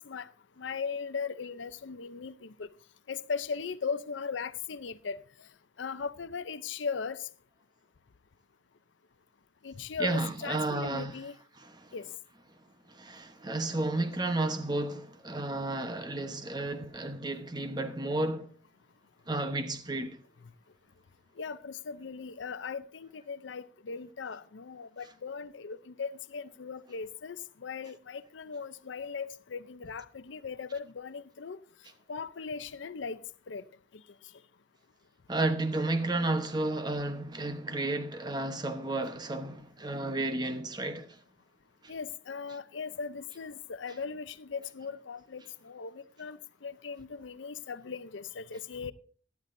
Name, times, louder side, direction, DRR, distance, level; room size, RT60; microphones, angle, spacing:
voice 1, 0.6-2.7 3.1-5.2 5.8-7.2 9.6-11.3 11.9-12.1 21.4-31.6 32.1-33.2 33.5-33.6 41.9-48.9, left 5 dB, 85° left, 0.6 m, -38 dB
voice 2, 10.0-11.2 11.6-11.9 12.9-18.5 19.3-20.2 35.3-41.2 41.8-41.9, right 2 dB, 25° right, 1.0 m, -32 dB
17.5 x 12.0 x 2.6 m
head